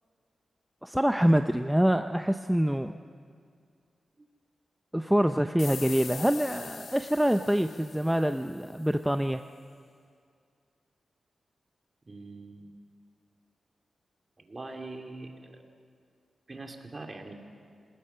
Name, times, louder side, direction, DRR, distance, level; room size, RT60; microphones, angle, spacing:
voice 1, 0.8-3.0 4.9-9.4, equal, 5° right, 8 dB, 0.5 m, -25 dB
sound 1, 5.6-8.9, left 6 dB, 75° left, 0.7 m, -43 dB
voice 2, 12.1-12.7 14.4-15.6 16.5-17.3, right 2 dB, 35° right, 3 dB, 2.3 m, -43 dB
27.0 x 19.0 x 5.6 m, 2.2 s
wide cardioid pair, 95°, 0 cm